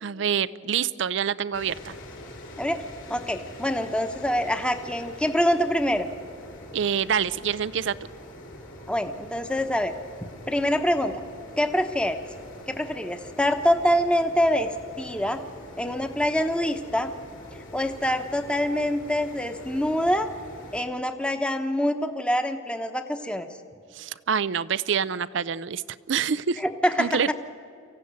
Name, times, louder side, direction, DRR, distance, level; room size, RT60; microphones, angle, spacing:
voice 1, 0.0-1.9 6.7-8.0 23.9-25.8 26.1-26.6 27.0-27.3, right 7 dB, 65° right, 16 dB, 0.5 m, -26 dB
sound 1, 1.5-20.8, left 1 dB, 75° left, 6.1 m, -44 dB
voice 2, 3.1-6.1 8.9-9.9 10.5-11.2 11.6-12.2 12.7-14.7 15.0-15.4 15.8-17.1 17.7-20.3 20.7-23.5 26.6-27.3, equal, 5° left, 7 dB, 1.0 m, -25 dB
24.0 x 15.5 x 9.3 m, 2.3 s
head